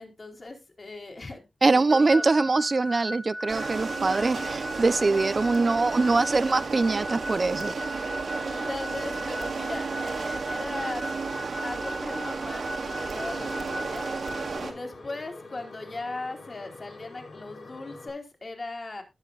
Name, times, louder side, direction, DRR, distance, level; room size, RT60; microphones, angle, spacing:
voice 1, 0.0-2.3 4.2-4.3 8.4-11.1 11.6-14.1 14.5-19.0, left 2 dB, 45° left, 3.9 m, -38 dB
voice 2, 1.6-7.7, right 3 dB, 45° right, 0.7 m, -23 dB
sound 1, 1.9-14.6, equal, ahead, 0.7 m, -38 dB
sound 2, 3.5-14.7, right 4 dB, 85° right, 2.9 m, -33 dB
sound 3, 12.7-18.1, left 3 dB, 80° left, 5.4 m, -45 dB
19.5 x 7.4 x 2.5 m
wide cardioid pair, 115°, 0 cm